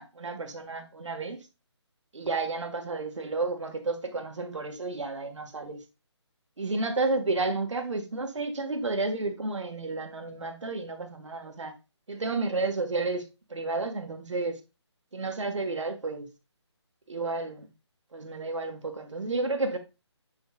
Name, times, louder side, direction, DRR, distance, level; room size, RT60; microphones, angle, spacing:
voice 1, 0.0-1.4 2.1-5.8 6.6-11.7 12.1-14.6 15.1-16.3 17.1-17.7 18.1-19.8, right 3 dB, 85° right, 1.8 m, -31 dB
8.0 x 5.3 x 2.5 m
hypercardioid pair, 175°, 15 cm